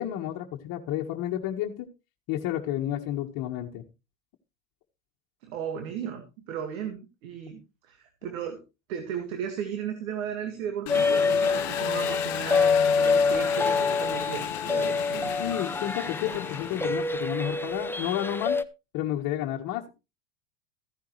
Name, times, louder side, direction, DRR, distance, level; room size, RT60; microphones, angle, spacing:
voice 1, 0.0-1.9 2.3-3.8 15.4-18.6 18.9-19.9, left 12 dB, 55° left, 0 dB, 1.6 m, -31 dB
voice 2, 5.4-8.6 8.9-15.3, right 8 dB, 80° right, 6 dB, 2.1 m, -35 dB
Engine, 10.9-17.4, left 19 dB, 70° left, 0.8 m, -36 dB
sound 1, 10.9-18.6, left 4 dB, 5° left, 0.9 m, -26 dB
14.5 x 10.5 x 3.2 m, 0.28 s
hypercardioid pair, 95°, 40 cm